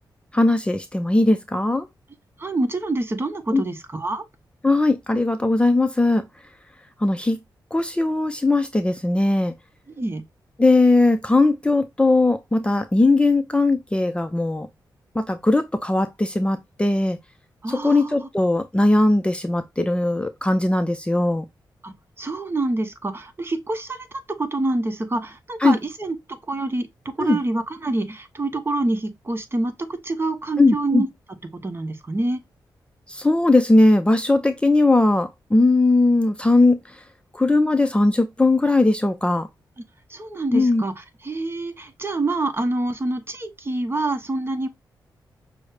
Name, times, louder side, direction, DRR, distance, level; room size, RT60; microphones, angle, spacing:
voice 1, 0.3-1.9 3.5-3.6 4.6-6.2 7.0-7.4 7.7-9.5 10.6-14.7 15.1-17.2 17.7-21.4 25.6-25.8 27.2-27.4 30.6-31.0 33.1-36.8 37.3-39.5 40.5-40.8, left 2 dB, 15° left, 0.5 m, -19 dB
voice 2, 2.4-4.2 9.9-10.2 17.6-18.2 21.8-26.2 26.5-26.9 27.2-31.1 31.5-32.4 40.1-44.7, right 2 dB, 30° right, 0.9 m, -26 dB
6.1 x 2.1 x 3.3 m
cardioid pair, 70°, 8 cm